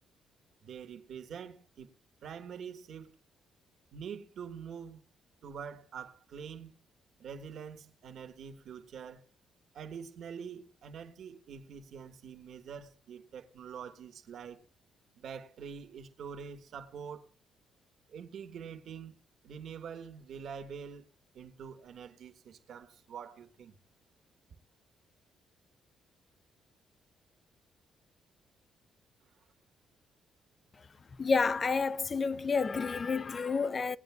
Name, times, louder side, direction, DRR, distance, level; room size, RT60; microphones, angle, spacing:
voice 1, 0.6-1.9 2.2-3.2 3.9-5.0 5.4-6.7 7.2-9.2 9.7-14.6 15.2-17.3 18.1-19.2 19.4-21.1 21.3-23.8, right 7 dB, 65° right, 1.7 m, -45 dB
voice 2, 31.2-34.0, left 4 dB, 35° left, 0.6 m, -29 dB
21.0 x 8.9 x 2.4 m
cardioid pair, 90°, 0 cm